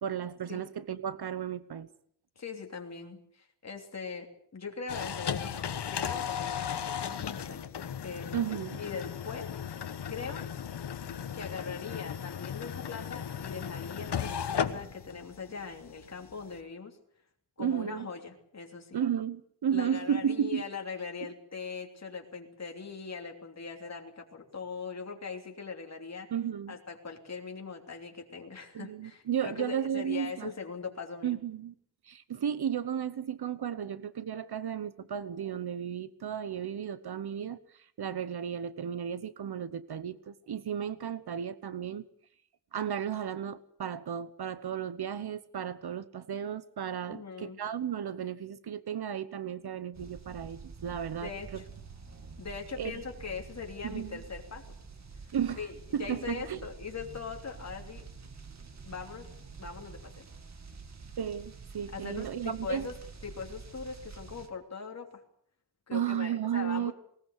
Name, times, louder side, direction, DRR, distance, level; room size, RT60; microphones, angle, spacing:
voice 1, 0.0-1.9 8.3-8.8 17.6-18.1 18.9-20.6 26.3-26.8 28.7-30.5 31.2-31.7 32.1-42.0 42.7-51.6 52.8-53.0 53.8-54.2 55.3-55.6 55.9-56.6 61.2-62.9 65.9-66.9, right 9 dB, 70° right, 1.0 m, -34 dB
voice 2, 2.4-5.6 5.9-7.6 8.0-8.3 8.8-9.5 10.1-10.4 11.3-17.0 17.6-19.0 19.7-26.3 26.7-31.4 47.1-47.6 51.2-51.7 52.4-54.8 55.6-55.7 56.0-58.0 58.8-59.3 59.6-60.3 61.9-65.2 65.9-66.9, left 5 dB, 40° left, 3.1 m, -41 dB
sound 1, 4.9-16.6, left 8 dB, 90° left, 1.4 m, -36 dB
sound 2, 49.9-64.5, right 4 dB, 45° right, 2.2 m, -48 dB
19.5 x 19.5 x 8.1 m
wide cardioid pair, 170°, 40 cm